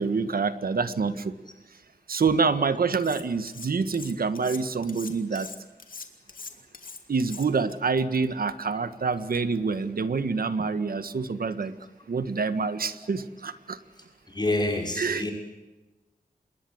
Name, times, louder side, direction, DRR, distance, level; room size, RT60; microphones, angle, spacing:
voice 1, 0.0-1.3 2.1-5.5 7.1-11.7 12.1-13.8 15.0-15.2, right 4 dB, 80° right, 11 dB, 1.6 m, -26 dB
Cutlery silverware, 3.0-3.7 3.9-7.7, left 4 dB, 65° left, 2.9 m, -42 dB
voice 2, 14.3-15.3, left 2 dB, 30° left, 2 dB, 6.0 m, -28 dB
27.5 x 21.5 x 8.0 m, 1.1 s
wide cardioid pair, 100°, 15 cm